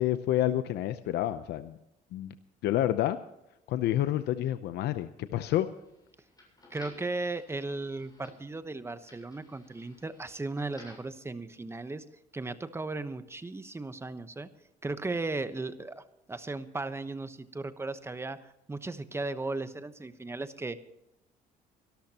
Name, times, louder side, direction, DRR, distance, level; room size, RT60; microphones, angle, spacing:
voice 1, 0.0-1.8 2.1-2.3 2.6-3.2 3.7-5.7, left 13 dB, 75° left, 11 dB, 0.7 m, -28 dB
sound 1, 5.3-11.2, left 2 dB, 20° left, 7.2 m, -57 dB
voice 2, 6.7-12.0 12.3-14.5 14.8-20.8, right 3 dB, 15° right, 11 dB, 1.0 m, -36 dB
24.5 x 13.0 x 2.9 m, 0.86 s
cardioid pair, 110°, 17 cm